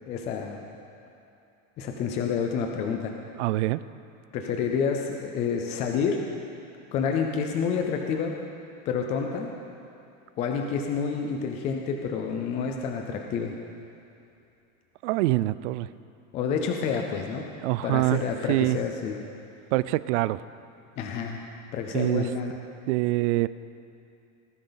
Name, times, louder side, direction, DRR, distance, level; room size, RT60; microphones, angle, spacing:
voice 1, 0.1-0.6 1.8-3.2 4.3-6.2 6.9-8.3 8.9-9.5 10.4-13.5 16.3-17.5 17.8-19.2 21.0-21.4 21.7-22.6, left 6 dB, 20° left, 2 dB, 0.4 m, -28 dB
voice 2, 3.4-3.8 15.0-15.9 17.6-18.8 19.7-20.4 21.9-22.3 22.9-23.5, right 18 dB, 65° right, 17 dB, 0.5 m, -25 dB
19.0 x 14.5 x 3.9 m, 2.7 s
supercardioid pair, 175°, 39 cm